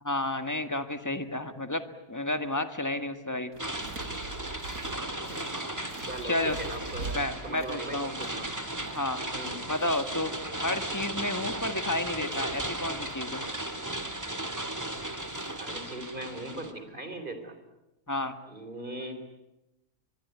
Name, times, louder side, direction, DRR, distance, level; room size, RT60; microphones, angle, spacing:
voice 1, 0.0-3.5 6.2-6.6 7.1-8.1 8.9-9.2 9.7-10.3 10.6-13.4 18.1-18.3, left 1 dB, 10° left, 8 dB, 1.6 m, -31 dB
sound 1, 3.5-15.7, right 3 dB, 90° right, 4.6 m, -46 dB
sound 2, 3.6-16.7, right 1 dB, 10° right, 2.0 m, -36 dB
voice 2, 5.7-8.5 9.3-9.6 15.6-17.6 18.5-19.2, right 1 dB, 30° right, 8 dB, 3.9 m, -39 dB
25.0 x 22.5 x 9.5 m, 0.93 s
omnidirectional pair, 1.6 m